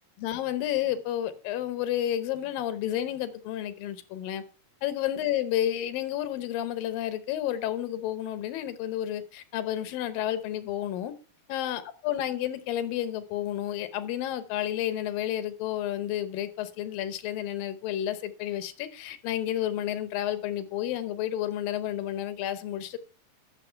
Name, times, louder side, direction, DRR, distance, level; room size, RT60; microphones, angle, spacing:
voice 1, 0.2-4.4 4.8-11.1 11.5-23.0, left 12 dB, 80° left, 2.7 m, -31 dB
12.0 x 6.8 x 4.4 m
omnidirectional pair, 4.0 m